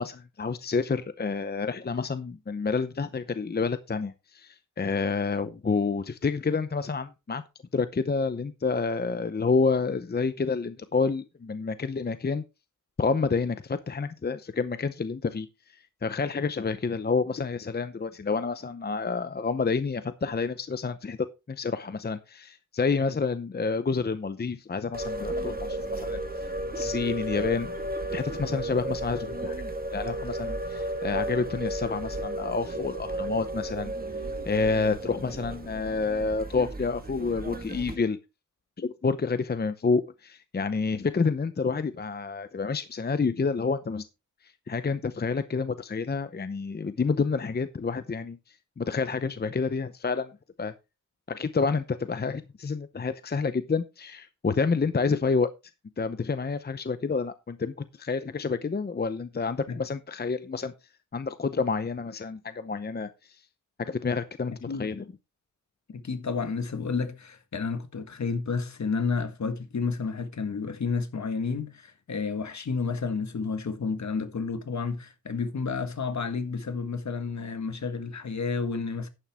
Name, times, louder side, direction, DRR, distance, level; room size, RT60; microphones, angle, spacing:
voice 1, 0.0-7.4 7.7-12.4 13.0-26.2 26.8-27.8 28.1-29.6 29.9-33.9 34.4-38.2 38.8-44.0 44.7-50.3 50.6-50.7 51.3-55.5 56.0-60.7 61.1-63.4 63.8-65.0, left 4 dB, 30° left, 0.7 m, -29 dB
sound 1, 24.9-38.0, right 1 dB, 30° right, 1.7 m, -34 dB
voice 2, 64.5-64.9 65.9-79.1, left 5 dB, 60° left, 1.6 m, -31 dB
11.0 x 8.9 x 3.5 m
wide cardioid pair, 105°, 31 cm